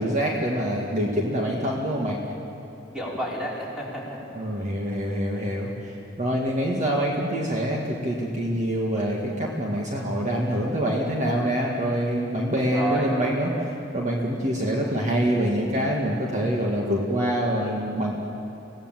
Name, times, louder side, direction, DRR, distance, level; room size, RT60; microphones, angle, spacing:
voice 1, 0.0-2.2 4.3-13.5 13.9-18.1, equal, 40° right, -2 dB, 2.0 m, -25 dB
voice 2, 2.9-4.2 12.6-13.1 17.6-17.8, right 1 dB, 5° right, -6 dB, 5.3 m, -31 dB
26.5 x 17.5 x 7.6 m, 2.9 s
head